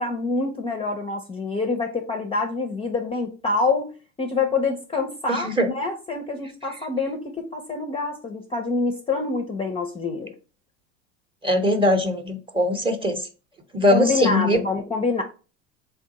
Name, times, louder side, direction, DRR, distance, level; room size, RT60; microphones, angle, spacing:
voice 1, 0.0-3.9 4.2-10.3 13.9-15.2, left 3 dB, 15° left, 4 dB, 0.5 m, -26 dB
voice 2, 5.3-5.7 11.4-13.2 13.7-14.6, left 1 dB, 15° right, 6 dB, 0.8 m, -21 dB
3.5 x 2.5 x 3.9 m, 0.34 s
hypercardioid pair, 90°, 36 cm